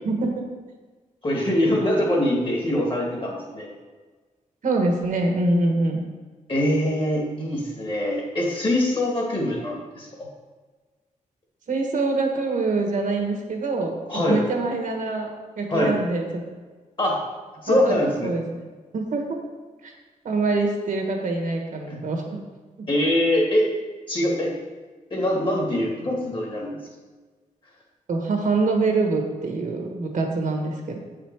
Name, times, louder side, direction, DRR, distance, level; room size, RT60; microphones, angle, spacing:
voice 1, 0.0-0.4 4.6-6.1 11.7-15.3 15.6-16.4 17.7-18.7 18.9-19.4 19.8-19.9 20.2-22.2 28.1-31.0, right 3 dB, 70° right, 2 dB, 1.3 m, -25 dB
voice 2, 1.2-3.7 6.5-10.1 14.1-14.4 15.7-15.9 17.0-17.2 17.6-18.3 21.9-22.0 22.9-23.7 24.1-24.5 25.1-26.8, left 1 dB, 35° left, -1 dB, 1.8 m, -23 dB
7.9 x 5.1 x 4.6 m, 1.4 s
wide cardioid pair, 145°, 14 cm